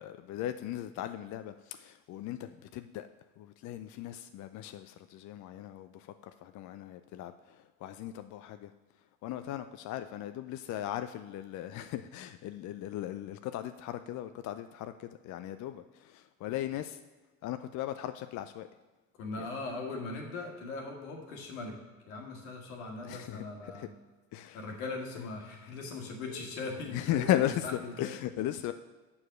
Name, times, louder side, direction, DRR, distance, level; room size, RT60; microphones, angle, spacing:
voice 1, 0.0-3.1 3.4-6.1 6.4-8.7 9.2-17.0 17.4-18.7 19.4-19.5 23.0-23.4 23.7-23.9 24.3-24.6 26.9-28.7, left 12 dB, 45° left, 9 dB, 0.5 m, -37 dB
voice 2, 19.1-21.8 22.1-23.9 24.5-28.1, left 3 dB, 75° left, 1 dB, 1.6 m, -40 dB
7.0 x 4.7 x 6.4 m, 1.2 s
hypercardioid pair, 60°, 42 cm